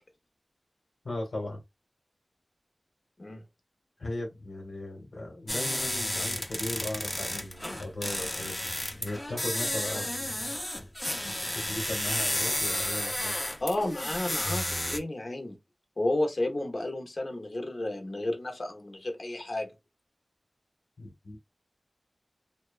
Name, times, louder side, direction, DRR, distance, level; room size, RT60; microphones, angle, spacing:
voice 1, 1.0-1.6 4.0-8.7 9.0-10.5 11.2-13.4 21.0-21.4, left 2 dB, 85° left, 1.1 m, -37 dB
sound 1, 5.5-15.0, left 1 dB, 25° left, 0.5 m, -32 dB
voice 2, 13.6-15.6 16.0-19.7, left 1 dB, 60° left, 0.7 m, -32 dB
2.7 x 2.1 x 2.4 m
wide cardioid pair, 65°, 0 cm